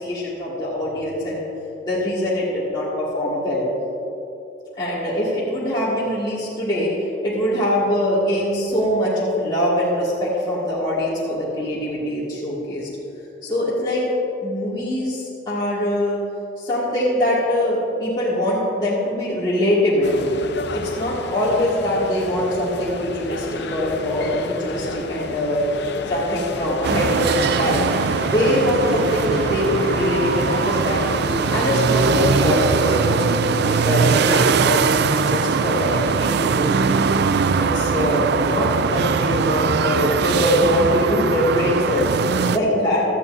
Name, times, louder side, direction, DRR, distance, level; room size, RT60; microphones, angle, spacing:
voice 1, 0.0-1.4 1.8-3.7 4.8-12.9 13.4-14.0 14.4-16.2 16.6-20.3 20.7-25.7 26.0-27.9 28.3-37.0 37.6-43.0, left 1 dB, 25° left, -10 dB, 2.3 m, -23 dB
sound 1, 20.0-33.1, left 3 dB, 65° left, 0.7 m, -32 dB
sound 2, 26.8-42.6, right 5 dB, 60° right, 0.4 m, -21 dB
17.5 x 13.0 x 2.7 m, 2.9 s
head